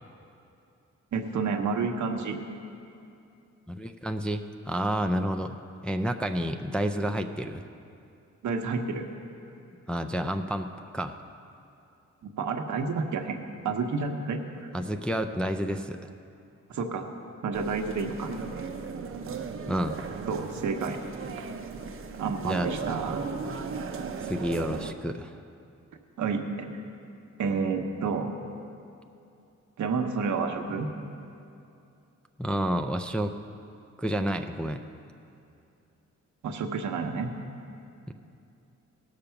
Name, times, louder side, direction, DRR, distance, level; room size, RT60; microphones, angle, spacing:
voice 1, 1.1-2.4 8.4-9.1 12.2-13.4 13.6-14.7 16.7-17.1 17.4-18.3 20.3-21.0 22.2-23.3 26.2-26.7 27.4-28.4 29.8-30.9 36.4-37.3, right 4 dB, 80° right, 4 dB, 1.0 m, -30 dB
voice 2, 3.7-5.6 5.8-7.6 9.9-11.2 14.7-16.0 19.7-20.0 22.4-22.7 24.2-25.3 32.4-33.3 34.0-34.8 38.1-38.2, equal, 5° left, 6 dB, 0.3 m, -29 dB
sound 1, 17.5-24.9, right 5 dB, 45° right, 0.7 m, -36 dB
17.0 x 6.8 x 5.8 m, 2.7 s
wide cardioid pair, 160°, 29 cm